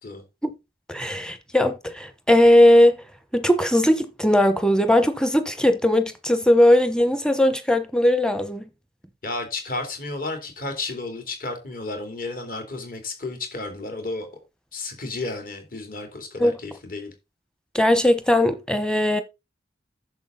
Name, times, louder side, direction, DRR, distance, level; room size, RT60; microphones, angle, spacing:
voice 1, 0.9-3.0 3.3-8.6 16.4-16.5 17.7-19.2, left 1 dB, 5° left, 0.9 m, -18 dB
voice 2, 9.2-14.3 14.7-17.1, left 2 dB, 50° left, 3.2 m, -32 dB
10.5 x 7.0 x 4.0 m
head